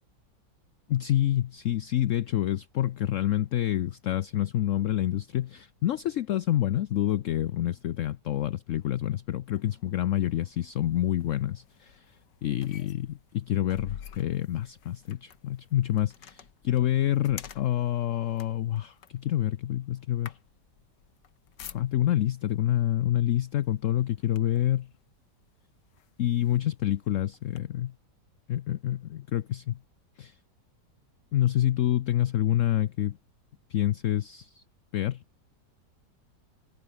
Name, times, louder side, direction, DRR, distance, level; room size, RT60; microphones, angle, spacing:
voice 1, 0.9-12.2 12.4-20.4 21.6-24.9 26.2-27.9 28.5-29.8 30.2-30.4 31.3-33.2 33.7-34.6 34.9-35.2, left 12 dB, 65° left, 0.8 m, -27 dB
sound 1, 9.5-22.3 23.1-23.4 23.7-24.8 25.4-25.5 25.9-27.6, left 8 dB, 80° left, 2.1 m, -49 dB
omnidirectional pair, 1.9 m